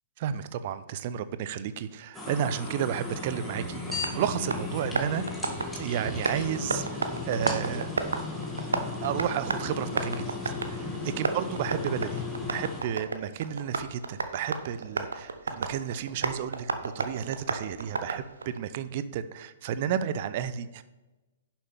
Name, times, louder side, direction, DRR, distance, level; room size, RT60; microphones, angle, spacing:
voice 1, 0.2-3.8 4.1-5.2 5.7-7.9 9.0-20.8, right 9 dB, 45° right, 13 dB, 0.6 m, -32 dB
sound 1, 2.1-12.8, left 3 dB, 5° left, 2.1 m, -36 dB
Tap, 3.1-18.6, right 4 dB, 70° right, 0.9 m, -34 dB
11.0 x 7.3 x 3.6 m, 1.1 s
figure-of-eight pair, 115°, 0 cm